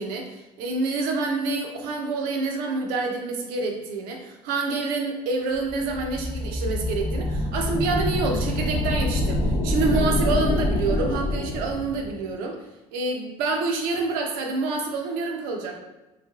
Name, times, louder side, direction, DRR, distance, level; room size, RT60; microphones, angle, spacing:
voice 1, 0.0-12.6 12.9-15.8, right 3 dB, 80° right, 2 dB, 0.7 m, -27 dB
sound 1, 5.6-12.1, left 1 dB, 45° left, 0.8 m, -26 dB
3.4 x 3.2 x 2.3 m, 1.0 s
supercardioid pair, 90°, 14 cm